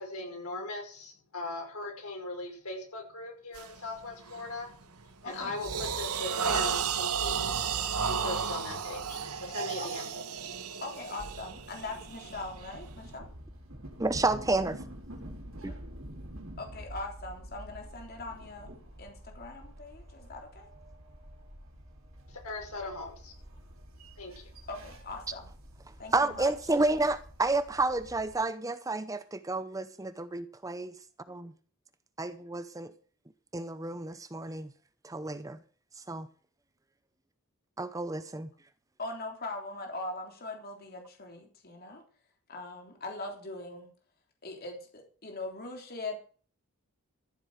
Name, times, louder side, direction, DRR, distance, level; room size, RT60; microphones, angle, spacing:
voice 1, 0.0-4.7 5.2-7.5 8.0-10.1 22.4-23.3 24.2-24.5, left 2 dB, 80° left, 5.6 m, -39 dB
sound 1, 3.5-3.8 4.3-4.6 5.0-13.1, right 6 dB, 90° right, 1.3 m, -33 dB
voice 2, 5.2-5.5 9.8-9.9 10.8-13.3 15.7-15.8 16.6-18.7 19.0-20.7 24.7-25.5 26.0-26.5 39.0-42.0 42.5-43.9 44.4-46.2, left 2 dB, 45° left, 3.6 m, -41 dB
sound 2, 11.5-28.4, equal, 65° right, 3.9 m, -48 dB
voice 3, 14.0-14.8 15.6-15.7 26.1-30.9 32.2-32.9 33.5-34.7 35.0-35.6 36.1-36.3 37.8-38.5, right 2 dB, 15° right, 0.6 m, -30 dB
14.5 x 8.0 x 6.5 m
head